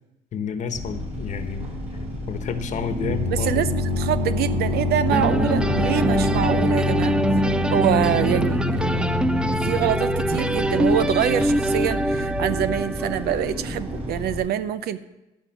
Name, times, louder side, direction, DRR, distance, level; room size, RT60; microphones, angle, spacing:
voice 1, 0.3-1.7 2.3-3.6, left 6 dB, 45° left, 8 dB, 1.2 m, -30 dB
sound 1, 0.7-14.4, equal, 40° right, 4.2 m, -33 dB
sound 2, 3.0-12.6, left 3 dB, 90° right, 3.4 m, -27 dB
voice 2, 3.3-7.2 7.7-9.2 9.6-15.0, right 10 dB, 70° right, 13 dB, 0.7 m, -25 dB
sound 3, 5.1-14.1, right 1 dB, 5° right, 0.4 m, -24 dB
15.0 x 5.5 x 7.1 m, 0.98 s
cardioid pair, 110°, 17 cm